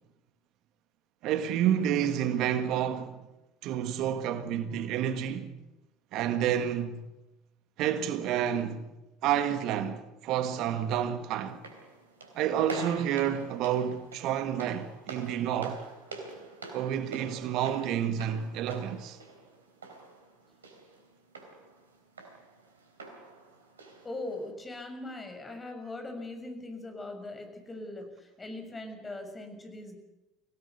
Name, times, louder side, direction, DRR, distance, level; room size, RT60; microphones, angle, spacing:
voice 1, 1.2-3.2 3.6-5.6 6.1-7.0 7.8-8.9 9.2-11.6 12.3-15.8 16.7-19.2, right 9 dB, 60° right, 1.6 m, -29 dB
sound 1, 11.5-24.5, right 3 dB, 90° right, 3.3 m, -46 dB
voice 2, 24.0-30.0, left 2 dB, 20° left, 6.6 m, -40 dB
24.5 x 17.5 x 8.3 m
hypercardioid pair, 65°, 0 cm